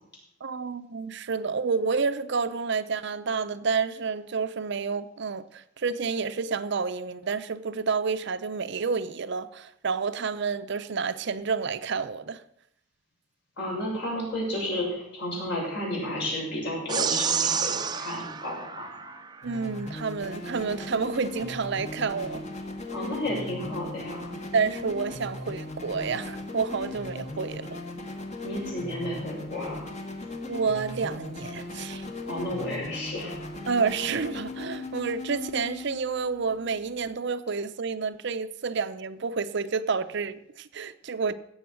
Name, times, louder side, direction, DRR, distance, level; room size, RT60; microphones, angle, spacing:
voice 1, 0.4-12.4 19.4-22.4 24.5-27.8 30.5-32.1 33.7-41.3, right 5 dB, 60° right, 0.6 m, -29 dB
voice 2, 13.6-19.1 22.9-24.3 28.4-29.9 32.3-33.5, left 1 dB, 60° left, 6.5 m, -32 dB
sound 1, 16.9-19.5, right 6 dB, 20° right, 0.6 m, -29 dB
sound 2, 19.4-37.2, left 2 dB, 35° left, 1.5 m, -38 dB
16.5 x 7.2 x 6.2 m
head